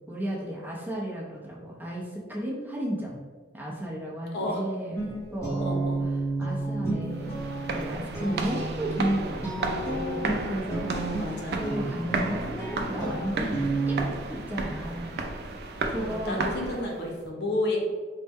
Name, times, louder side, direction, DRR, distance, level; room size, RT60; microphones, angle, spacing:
voice 1, 0.1-3.2 3.5-5.9 6.4-7.3 7.6-11.0 11.6-15.2 15.9-16.5, right 1 dB, 10° right, -5 dB, 0.6 m, -33 dB
Guitar, 5.0-14.0, right 2 dB, 15° left, 1.0 m, -32 dB
voice 2, 5.6-6.0 8.2-8.4 10.9-11.6 12.0-12.3 15.9-17.9, left 1 dB, 55° left, -1 dB, 0.7 m, -31 dB
sound 1, 7.1-17.1, right 3 dB, 55° right, 0.3 m, -33 dB
4.1 x 2.1 x 3.5 m, 1.5 s
head